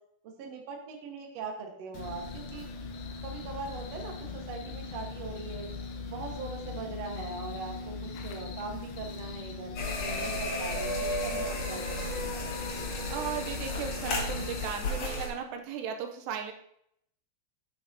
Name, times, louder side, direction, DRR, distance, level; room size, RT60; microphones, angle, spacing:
voice 1, 0.2-2.7 3.2-5.7 6.1-12.3, right 4 dB, 60° right, 1 dB, 1.7 m, -41 dB
sound 1, 1.9-14.7, left 4 dB, 70° left, 2.5 m, -40 dB
sound 2, 9.8-15.3, left 1 dB, 50° left, 2.4 m, -33 dB
voice 2, 13.1-16.5, right 7 dB, 85° right, 4 dB, 2.8 m, -36 dB
9.4 x 7.3 x 2.8 m, 0.73 s
omnidirectional pair, 4.9 m